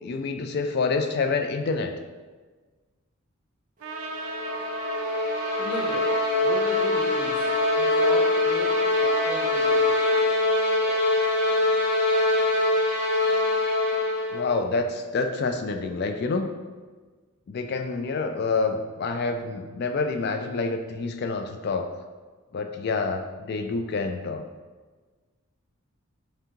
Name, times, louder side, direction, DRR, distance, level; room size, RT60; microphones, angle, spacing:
voice 1, 0.0-1.9 14.3-16.5 17.5-21.9 22.5-24.4, left 4 dB, 50° left, 6 dB, 0.3 m, -27 dB
Trumpet, 3.8-10.3, right 2 dB, 75° right, 0.4 m, -37 dB
sound 1, 4.0-14.5, left 2 dB, 40° right, 0.7 m, -23 dB
voice 2, 5.6-6.0 6.4-8.7 9.0-9.8, equal, 20° left, -6 dB, 1.0 m, -36 dB
3.4 x 2.8 x 3.6 m, 1.4 s
head